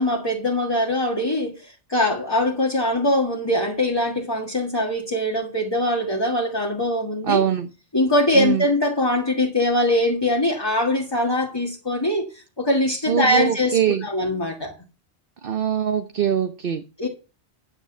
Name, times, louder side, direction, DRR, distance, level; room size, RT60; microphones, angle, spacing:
voice 1, 0.0-7.4 7.9-14.7 17.0-17.1, left 1 dB, 20° left, 1.8 m, -22 dB
voice 2, 7.2-7.7 8.3-8.7 13.1-14.1 15.4-16.8, right 9 dB, 55° right, 1.0 m, -22 dB
10.0 x 8.1 x 5.5 m
omnidirectional pair, 1.2 m